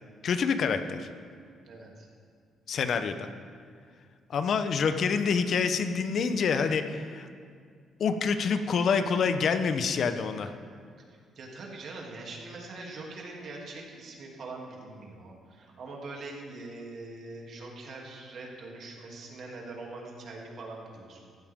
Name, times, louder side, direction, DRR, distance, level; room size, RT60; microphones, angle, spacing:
voice 1, 0.2-1.1 2.7-3.3 4.3-7.3 8.0-10.5, left 5 dB, 60° left, 9 dB, 0.9 m, -27 dB
voice 2, 1.6-2.1 11.3-21.4, right 2 dB, 60° right, -1 dB, 2.9 m, -43 dB
15.5 x 12.0 x 3.7 m, 2.1 s
cardioid pair, 90°, 0 cm